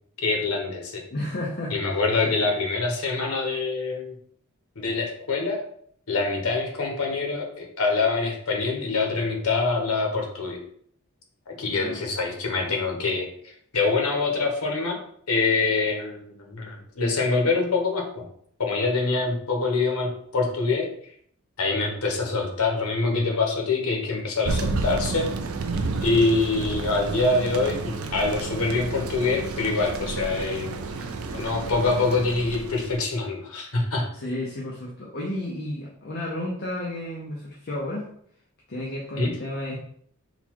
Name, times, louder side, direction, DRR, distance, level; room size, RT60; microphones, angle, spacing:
voice 1, 0.2-1.0 1.7-4.1 4.8-5.6 6.1-10.6 11.5-15.0 15.3-18.3 18.6-20.9 21.6-25.3 26.0-30.7 31.3-34.1 39.2-39.3, left 3 dB, 85° left, 1 dB, 1.0 m, -25 dB
voice 2, 1.1-1.8 2.2-2.5 11.7-12.0 34.1-38.1 38.7-39.8, left 1 dB, 50° left, -3 dB, 0.7 m, -32 dB
Thunder, 24.4-33.0, right 3 dB, 75° right, 0.5 m, -31 dB
3.9 x 2.3 x 4.4 m, 0.64 s
head